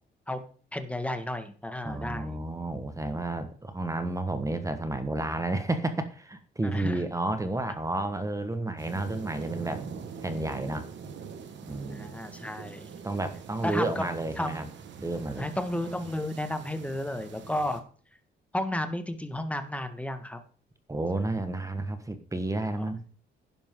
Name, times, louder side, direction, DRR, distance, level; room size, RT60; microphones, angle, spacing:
voice 1, 0.7-2.4 6.6-7.0 11.9-12.9 13.6-14.1 14.4-14.6 15.4-17.8 18.5-20.4, left 1 dB, 5° left, 8 dB, 1.5 m, -32 dB
voice 2, 1.8-9.9 10.2-10.9 11.7-12.2 13.0-14.7 15.0-15.5 20.9-23.0, right 2 dB, 15° right, 9 dB, 1.3 m, -31 dB
sound 1, 8.8-17.8, right 6 dB, 65° right, 1.5 m, -43 dB
11.0 x 10.5 x 3.7 m, 0.42 s
cardioid pair, 90°, 20 cm